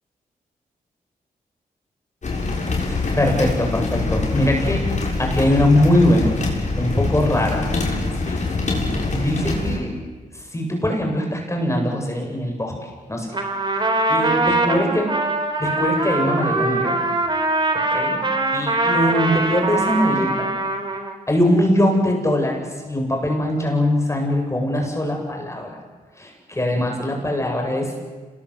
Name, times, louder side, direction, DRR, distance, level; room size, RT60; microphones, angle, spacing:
sound 1, 2.2-9.8, left 3 dB, 50° left, 6.9 m, -24 dB
voice 1, 2.9-4.8 5.2-6.4 6.8-7.7 8.3-8.5 9.1-9.9 10.3-12.7 13.1-13.3 13.6-13.8 14.1-15.1 15.6-17.0 17.9-18.2 18.5-20.5 21.3-25.7 26.2-27.9, left 1 dB, 20° left, 1 dB, 7.6 m, -21 dB
Trumpet, 13.3-21.2, right 2 dB, 30° right, 4.1 m, -22 dB
26.5 x 20.0 x 8.2 m, 1.3 s
cardioid pair, 70°, 16 cm